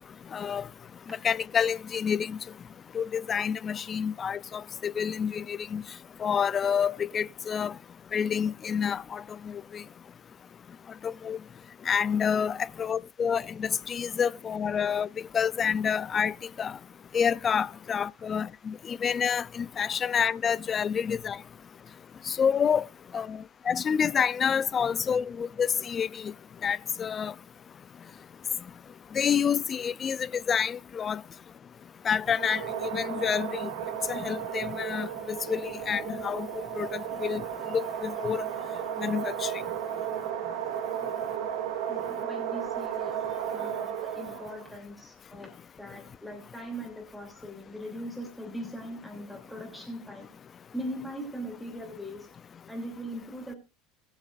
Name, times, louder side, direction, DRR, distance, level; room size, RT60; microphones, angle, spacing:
voice 1, 0.3-0.7 1.2-2.4 2.9-5.8 6.2-7.7 8.1-9.8 11.2-11.4 11.9-15.1 15.3-16.7 17.1-21.4 22.3-22.8 23.1-23.4 23.7-26.3 26.6-27.3 29.1-31.2 32.0-33.7 34.1-36.5 36.7-37.4 37.7-38.4 39.0-39.5, left 7 dB, 25° left, 0.5 m, -28 dB
sound 1, 32.2-44.7, right 9 dB, 80° right, 2.2 m, -34 dB
voice 2, 41.0-41.5 41.9-43.1 43.5-45.5 45.8-50.3 50.7-52.3 52.7-53.6, equal, ahead, 2.9 m, -40 dB
21.0 x 7.2 x 2.5 m
supercardioid pair, 130°, 0 cm